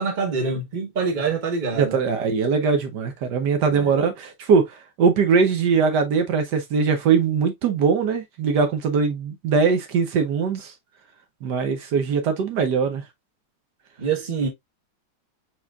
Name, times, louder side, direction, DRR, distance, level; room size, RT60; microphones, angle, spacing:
voice 1, 0.0-2.0 3.7-4.0 14.0-14.5, right 4 dB, 30° right, 1.1 m, -25 dB
voice 2, 1.8-10.7 11.4-13.0, right 5 dB, 70° right, 1.4 m, -21 dB
4.3 x 4.3 x 2.3 m
omnidirectional pair, 2.0 m